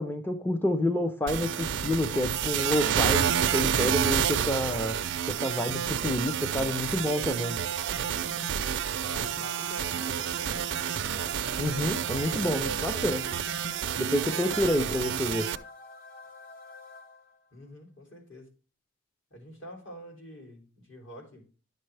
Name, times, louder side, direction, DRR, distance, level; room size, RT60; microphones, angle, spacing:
voice 1, 0.0-5.0 5.3-7.6 11.6-13.2 14.0-15.5, left 1 dB, 10° left, 6 dB, 0.6 m, -29 dB
sound 1, 1.3-15.6, right 8 dB, 60° right, 0.5 m, -29 dB
voice 2, 9.0-10.7 12.3-13.4 17.5-18.5 19.3-21.5, equal, 65° left, 1 dB, 3.3 m, -45 dB
sound 2, 9.3-17.5, left 3 dB, 45° left, 0.7 m, -48 dB
11.0 x 6.6 x 3.3 m, 0.36 s
head